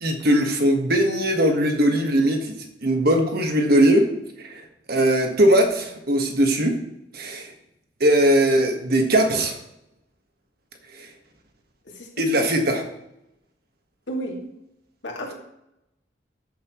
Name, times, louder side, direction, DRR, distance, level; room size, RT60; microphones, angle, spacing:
voice 1, 0.0-4.1 4.4-6.8 7.1-7.5 8.0-9.5 10.9-11.1 12.2-12.9, right 1 dB, 60° right, 4 dB, 1.6 m, -20 dB
voice 2, 11.9-12.5 14.1-14.5 15.0-15.3, right 1 dB, 80° left, 0 dB, 2.3 m, -33 dB
14.0 x 7.4 x 3.2 m, 0.82 s
head